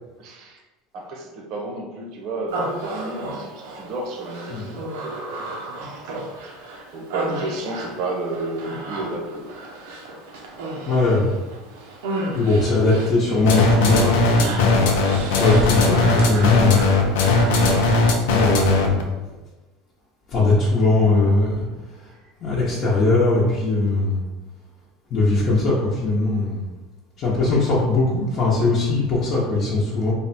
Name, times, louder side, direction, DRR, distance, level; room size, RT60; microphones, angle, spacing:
voice 1, 0.2-0.6 0.9-6.2 6.9-9.5 17.7-18.0, right 2 dB, 55° right, 1 dB, 0.8 m, -32 dB
Human voice, 2.5-17.7, right 2 dB, 90° right, 0.8 m, -34 dB
voice 2, 10.9-11.3 12.3-14.7 15.4-16.9 18.3-19.0 20.3-21.6 22.4-24.2 25.1-26.6 27.2-30.1, left 2 dB, 45° left, -6 dB, 0.8 m, -20 dB
sound 1, 13.5-19.0, left 3 dB, 85° left, 0.6 m, -18 dB
3.5 x 2.2 x 4.1 m, 1.2 s
supercardioid pair, 125°, 0 cm